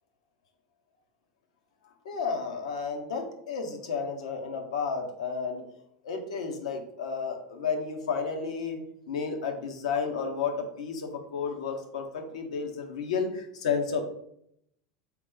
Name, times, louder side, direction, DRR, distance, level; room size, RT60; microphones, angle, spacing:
voice 1, 1.8-5.6 6.0-14.0, left 5 dB, 80° left, 4 dB, 0.8 m, -32 dB
4.0 x 3.0 x 3.7 m, 0.72 s
hypercardioid pair, 105°, 3 cm